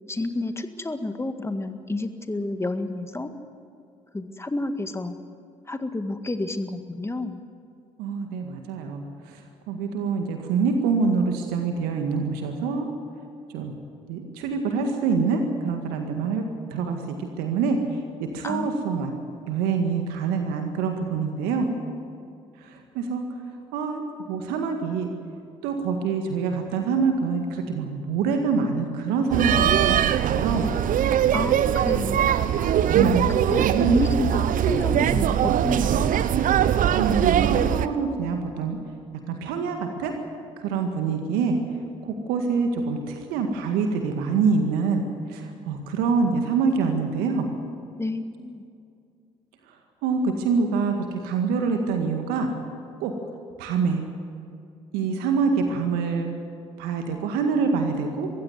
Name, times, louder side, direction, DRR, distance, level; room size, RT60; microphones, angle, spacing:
voice 1, 0.1-3.3 4.1-5.1 5.7-7.4 18.4-18.7 19.2-19.4 31.3-32.5 33.0-33.2 33.5-36.2 48.0-48.6, left 2 dB, 15° left, 8 dB, 1.9 m, -30 dB
voice 2, 8.0-9.4 9.7-12.9 13.5-13.7 14.1-16.4 16.7-17.0 17.4-18.0 18.3-19.1 19.5-21.7 22.6-23.2 23.7-24.0 24.3-25.1 25.6-30.0 30.2-30.7 32.9-33.2 33.6-34.0 36.9-38.8 39.3-40.1 40.6-41.5 42.0-47.5 50.0-50.9 51.2-52.5 53.0-53.1 53.6-54.0 54.9-56.3 56.8-58.3, right 5 dB, 75° right, 4 dB, 1.9 m, -25 dB
sound 1, 29.3-37.9, right 10 dB, 55° right, 0.9 m, -21 dB
22.0 x 15.5 x 9.5 m, 2.4 s
hypercardioid pair, 45°, 16 cm